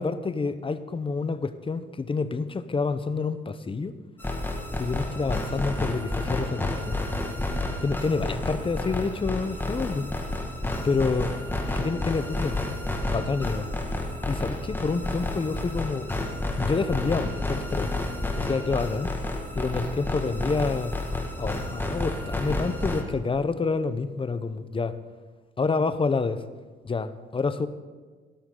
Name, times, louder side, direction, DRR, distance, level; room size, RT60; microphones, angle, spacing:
voice 1, 0.0-3.9 4.8-7.0 7.8-10.1 10.8-11.3 11.7-12.6 13.1-13.7 14.3-16.1 16.6-17.9 18.4-19.1 19.6-20.9 21.4-25.0 25.6-26.4 26.8-27.7, left 4 dB, 25° left, 12 dB, 0.8 m, -28 dB
sound 1, 4.2-23.0, left 2 dB, 10° left, 1.9 m, -30 dB
19.0 x 11.5 x 3.9 m, 1.4 s
cardioid pair, 90°, 20 cm